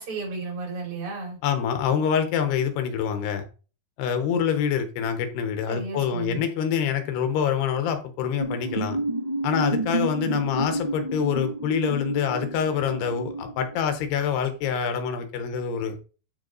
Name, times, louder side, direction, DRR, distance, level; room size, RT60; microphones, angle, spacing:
voice 1, 0.0-1.4 5.7-6.4, right 4 dB, 35° right, 3.8 m, -33 dB
voice 2, 1.4-3.4 4.0-9.0 9.4-16.0, left 7 dB, 80° left, 3.2 m, -26 dB
sound 1, 8.4-14.0, right 2 dB, 20° right, 1.1 m, -30 dB
12.5 x 4.9 x 4.0 m
omnidirectional pair, 4.8 m